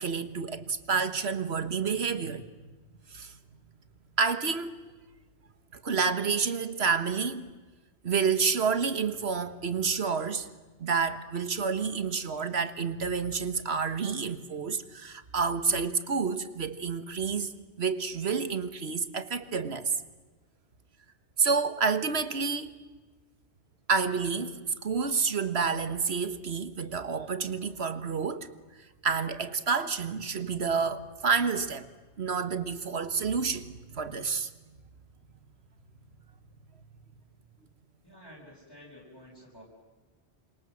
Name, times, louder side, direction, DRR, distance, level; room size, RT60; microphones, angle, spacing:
voice 1, 0.0-2.5 3.1-3.3 4.2-4.7 5.7-7.5 8.0-10.5 10.8-19.9 21.4-22.7 23.9-28.5 29.0-31.9 32.2-34.5, right 5 dB, 70° right, 1.7 m, -29 dB
voice 2, 38.0-39.6, equal, 20° left, 5.4 m, -51 dB
29.0 x 26.5 x 7.7 m
omnidirectional pair, 1.1 m